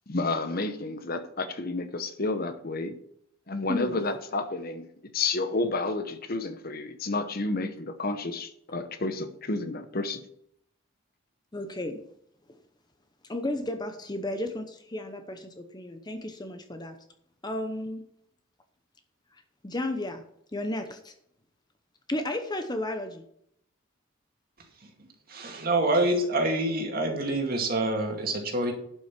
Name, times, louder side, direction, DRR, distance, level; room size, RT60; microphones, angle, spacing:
voice 1, 0.1-2.9 3.5-4.9 5.1-10.2, left 3 dB, 45° left, 9 dB, 0.9 m, -30 dB
voice 2, 11.5-12.0 13.2-17.0 17.4-18.0 19.3-20.2 20.5-21.1 22.1-23.2, left 1 dB, 20° left, 7 dB, 0.8 m, -33 dB
voice 3, 25.3-28.7, right 2 dB, 45° right, 3 dB, 2.3 m, -26 dB
11.0 x 6.2 x 5.9 m, 0.71 s
head